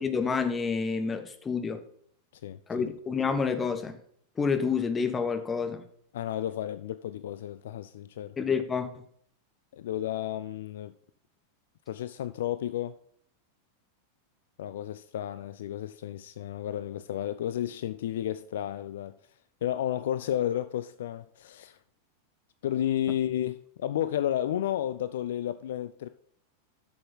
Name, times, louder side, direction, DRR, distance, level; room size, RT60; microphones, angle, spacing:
voice 1, 0.0-1.8 2.7-4.0 4.4-5.8 8.4-8.9, left 5 dB, 20° left, 1.0 m, -28 dB
voice 2, 2.4-2.9 6.1-8.3 9.7-10.9 11.9-12.9 14.6-19.1 19.6-21.8 22.6-26.1, left 11 dB, 60° left, 0.3 m, -32 dB
7.1 x 6.7 x 5.6 m
figure-of-eight pair, 90°, 0 cm